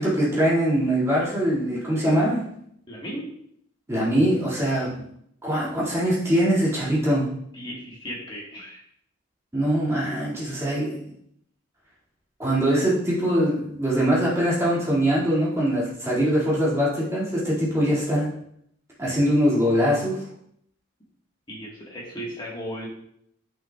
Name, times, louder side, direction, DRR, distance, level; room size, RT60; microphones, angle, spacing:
voice 1, 0.0-2.4 3.9-5.1 5.4-7.3 9.5-11.1 12.4-18.3 19.0-20.2, equal, 15° right, -7 dB, 2.3 m, -22 dB
voice 2, 2.9-3.3 7.5-8.8 21.5-22.9, equal, 25° left, -3 dB, 1.6 m, -36 dB
7.2 x 6.0 x 2.4 m, 0.70 s
head